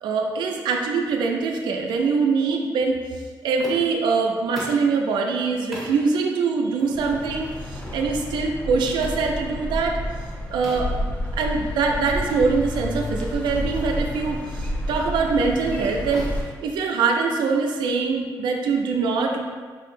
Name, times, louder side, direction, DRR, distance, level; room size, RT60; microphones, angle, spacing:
voice 1, 0.0-3.0 3.4-10.0 10.5-10.9 11.3-16.3 16.6-19.4, right 4 dB, 90° right, 2 dB, 0.4 m, -23 dB
sound 1, 3.6-4.0 4.6-4.9 5.7-6.0 6.8-7.0 7.8-8.0 9.0-9.3 10.6-11.0 12.3-12.4 12.9-13.0 13.8-14.0 14.9-15.2 16.1-17.3, equal, ahead, 0.9 m, -39 dB
sound 2, 6.9-16.4, equal, 15° left, 0.4 m, -30 dB
3.6 x 2.7 x 2.5 m, 1.5 s
cardioid pair, 105°, 8 cm